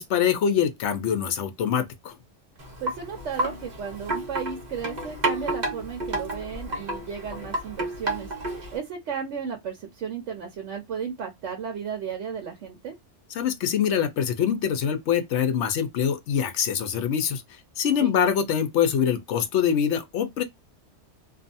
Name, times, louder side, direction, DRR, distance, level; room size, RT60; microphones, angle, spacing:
voice 1, 0.0-2.1 13.3-17.4 17.8-20.4, left 8 dB, 70° left, 0.9 m, -24 dB
Wind chime, 2.6-8.8, right 2 dB, 40° right, 1.0 m, -31 dB
voice 2, 2.8-8.3 8.7-12.9 18.0-18.2, right 7 dB, 80° right, 1.0 m, -34 dB
2.6 x 2.4 x 2.5 m
omnidirectional pair, 1.2 m